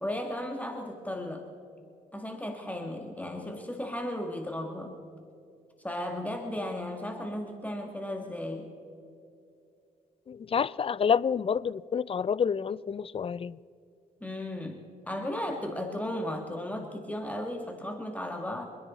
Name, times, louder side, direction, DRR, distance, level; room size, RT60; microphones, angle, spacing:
voice 1, 0.0-1.5 2.1-4.9 5.8-8.7 14.2-14.8 15.1-18.7, left 1 dB, 10° left, 1.9 m, -35 dB
voice 2, 10.3-13.6, left 7 dB, 40° left, 0.4 m, -28 dB
29.0 x 10.5 x 4.1 m
cardioid pair, 65°, 15 cm